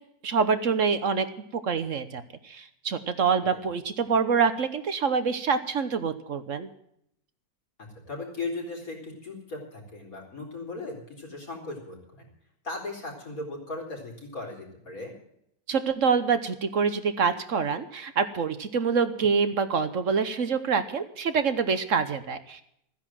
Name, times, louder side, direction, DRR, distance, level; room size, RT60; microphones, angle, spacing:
voice 1, 0.2-1.3 1.5-6.7 15.7-22.6, right 5 dB, 60° right, 11 dB, 1.3 m, -26 dB
voice 2, 7.8-12.3 12.6-15.1, left 3 dB, 70° left, 0 dB, 4.8 m, -37 dB
15.0 x 10.0 x 7.5 m, 0.73 s
omnidirectional pair, 1.6 m